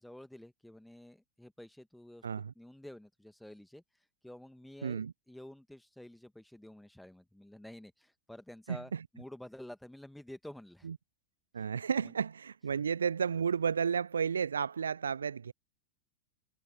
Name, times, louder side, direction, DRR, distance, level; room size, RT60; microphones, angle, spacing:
voice 1, 0.0-2.3 2.6-3.8 4.2-10.9 11.6-11.7 12.0-12.1, left 1 dB, 5° left, 1.7 m, -50 dB
voice 2, 4.8-5.1 8.7-9.0 10.8-10.9 11.5-15.5, right 6 dB, 70° right, 0.4 m, -32 dB
figure-of-eight pair, 90°, 0 cm